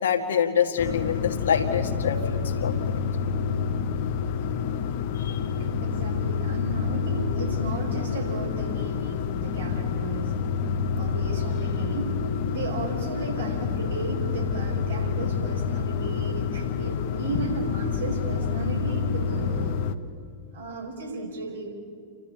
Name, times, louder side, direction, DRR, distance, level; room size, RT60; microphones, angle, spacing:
voice 1, 0.0-3.0 5.1-5.4, left 7 dB, 65° left, 5 dB, 1.9 m, -26 dB
sound 1, 0.8-19.9, left 6 dB, 50° left, 0.9 m, -28 dB
voice 2, 5.8-10.4 10.9-12.1 12.4-19.8 20.5-21.7, right 3 dB, 70° right, -1 dB, 4.9 m, -35 dB
29.5 x 13.0 x 8.5 m, 2.3 s
figure-of-eight pair, 90°, 0 cm